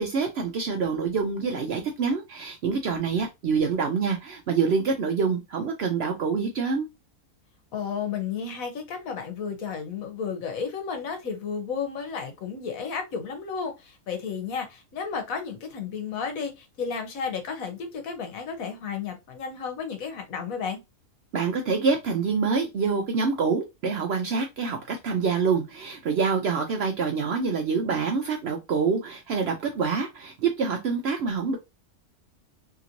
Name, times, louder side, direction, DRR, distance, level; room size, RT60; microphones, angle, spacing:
voice 1, 0.0-6.9 21.3-31.6, right 5 dB, 65° right, 0.6 m, -26 dB
voice 2, 7.7-20.8, left 6 dB, 80° left, 1.2 m, -33 dB
2.9 x 2.9 x 2.5 m
omnidirectional pair, 1.5 m